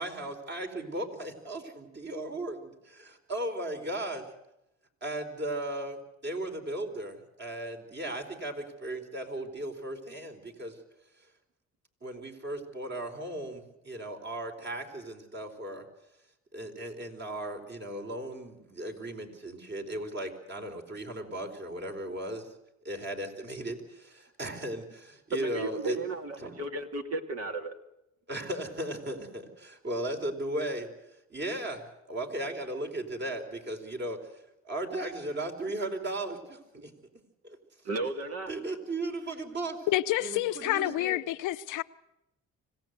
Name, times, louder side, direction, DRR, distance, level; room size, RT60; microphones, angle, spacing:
voice 1, 0.0-4.2 5.0-6.0 6.2-10.8 12.0-15.8 16.5-22.5 22.8-26.0 26.4-26.6 28.3-30.9 31.3-36.9 37.4-37.6 38.5-39.9 40.2-41.2, right 1 dB, 35° right, 4.3 m, -36 dB
voice 2, 25.3-27.7 37.8-38.5, right 2 dB, 55° right, 2.2 m, -34 dB
voice 3, 39.9-41.8, left 15 dB, 85° left, 0.7 m, -28 dB
25.5 x 17.0 x 8.1 m
cardioid pair, 90°, 30 cm